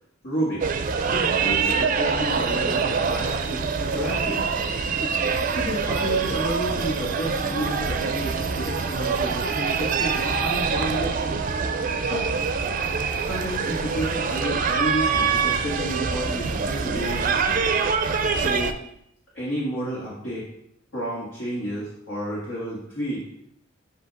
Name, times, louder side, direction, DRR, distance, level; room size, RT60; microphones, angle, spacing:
voice 1, 0.2-0.8 1.0-4.4 5.5-11.4 12.0-12.3 13.2-17.6 18.3-18.7 19.3-20.5 20.9-23.3, equal, 70° left, -7 dB, 1.7 m, -31 dB
sound 1, 0.6-18.7, right 5 dB, 45° right, 0.4 m, -25 dB
7.9 x 2.8 x 5.1 m, 0.73 s
head